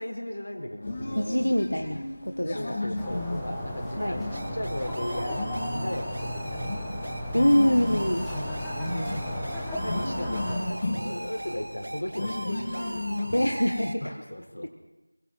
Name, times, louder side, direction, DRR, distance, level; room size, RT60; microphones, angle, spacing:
voice 1, 0.0-1.2 2.5-7.1 7.6-7.9 8.8-9.4 9.8-13.3 14.0-14.7, left 1 dB, 55° left, 4 dB, 4.3 m, -37 dB
sound 1, 0.8-14.0, left 1 dB, 20° left, 2.2 m, -35 dB
voice 2, 1.2-2.9 4.0-4.2 7.3-8.3 13.3-14.1, equal, 80° left, 5 dB, 1.6 m, -25 dB
sound 2, 3.0-10.6, equal, ahead, 1.3 m, -35 dB
sound 3, 4.3-13.9, right 1 dB, 50° right, 1.9 m, -39 dB
28.0 x 23.0 x 4.2 m, 0.98 s
figure-of-eight pair, 175°, 0 cm